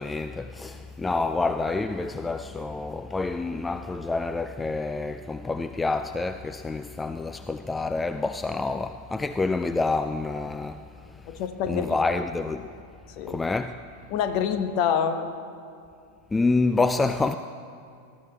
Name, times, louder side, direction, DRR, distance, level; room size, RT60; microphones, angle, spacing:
voice 1, 0.0-10.8 11.3-11.4 11.7-12.7 13.3-13.8 16.3-17.4, left 3 dB, 10° left, 0.3 m, -27 dB
voice 2, 11.3-12.0 13.2-13.4 14.1-15.3, left 7 dB, 45° left, 0.9 m, -26 dB
19.5 x 13.5 x 3.3 m
figure-of-eight pair, 90°, 0 cm